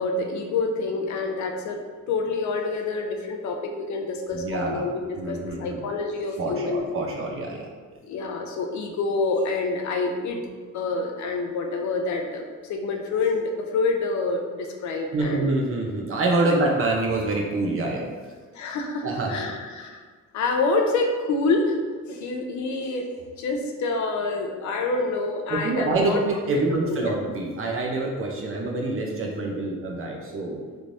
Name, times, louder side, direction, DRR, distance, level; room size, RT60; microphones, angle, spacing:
voice 1, 0.0-1.8 2.1-6.9 8.0-10.4 10.7-15.5 18.5-20.0 20.3-21.8 22.1-23.1 23.4-26.2 26.5-26.6 26.9-27.2, left 3 dB, 70° left, 3 dB, 0.6 m, -27 dB
voice 2, 4.3-4.8 5.2-5.8 6.4-7.7 15.1-18.0 19.0-19.4 25.5-30.6, right 2 dB, 45° right, -1 dB, 0.7 m, -26 dB
3.4 x 3.1 x 2.6 m, 1.5 s
cardioid pair, 90°, 30 cm